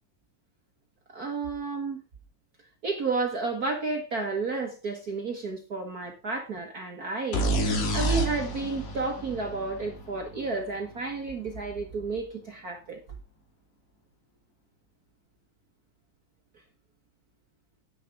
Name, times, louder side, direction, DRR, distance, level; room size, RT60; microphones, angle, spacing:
voice 1, 1.1-2.0 2.8-7.5 7.9-13.0, right 3 dB, 60° right, 0.9 m, -31 dB
sound 1, 7.3-11.0, right 1 dB, 70° left, 3.9 m, -29 dB
10.5 x 10.0 x 3.5 m
omnidirectional pair, 3.9 m